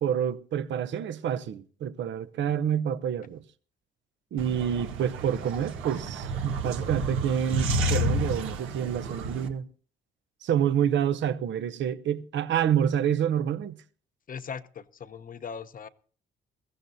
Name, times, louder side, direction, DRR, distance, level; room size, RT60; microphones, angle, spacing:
voice 1, 0.0-3.4 4.3-9.7 10.4-13.8, right 9 dB, 65° right, 0.8 m, -28 dB
sound 1, 4.4-9.5, right 1 dB, 85° right, 1.4 m, -30 dB
voice 2, 14.3-15.9, left 6 dB, 45° left, 0.8 m, -39 dB
21.5 x 14.5 x 2.7 m
cardioid pair, 90°, 20 cm